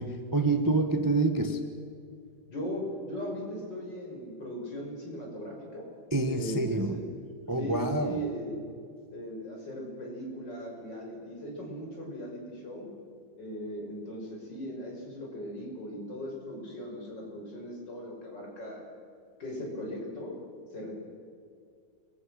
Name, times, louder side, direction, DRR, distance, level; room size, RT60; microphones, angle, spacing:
voice 1, 0.0-1.6 6.1-7.0 7.5-8.2, right 2 dB, 15° right, 7 dB, 1.0 m, -27 dB
voice 2, 2.5-5.8 6.2-7.0 7.6-8.6 9.1-12.9 13.4-18.8 19.4-20.3 20.7-20.9, equal, 55° left, -1 dB, 6.6 m, -38 dB
29.5 x 22.5 x 6.3 m, 2.4 s
omnidirectional pair, 2.2 m